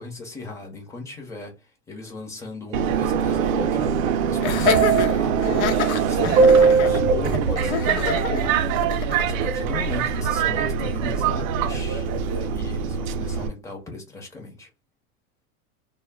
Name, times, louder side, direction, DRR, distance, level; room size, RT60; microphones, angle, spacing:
voice 1, 0.0-3.9 4.2-5.7 6.1-14.7, left 2 dB, 5° left, 0.6 m, -36 dB
Subway metro underground, 2.7-13.5, right 6 dB, 75° right, 0.5 m, -22 dB
Laughter, 4.4-9.4, left 7 dB, 80° left, 0.7 m, -27 dB
2.1 x 2.0 x 3.3 m
supercardioid pair, 140°, 42 cm